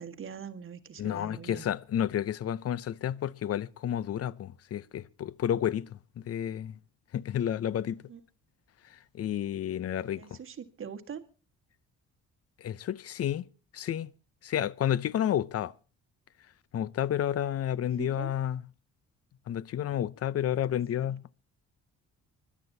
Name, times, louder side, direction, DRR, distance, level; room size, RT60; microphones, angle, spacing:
voice 1, 0.0-1.6 8.1-8.2 10.2-11.2 18.0-18.3 21.0-21.1, right 7 dB, 45° right, 1.6 m, -42 dB
voice 2, 1.0-5.9 6.2-6.8 7.1-8.0 9.1-10.4 12.6-13.4 13.7-14.1 14.4-15.7 16.7-18.6 19.5-21.2, left 10 dB, 50° left, 0.6 m, -31 dB
25.0 x 11.5 x 2.7 m
cardioid pair, 90°, 30 cm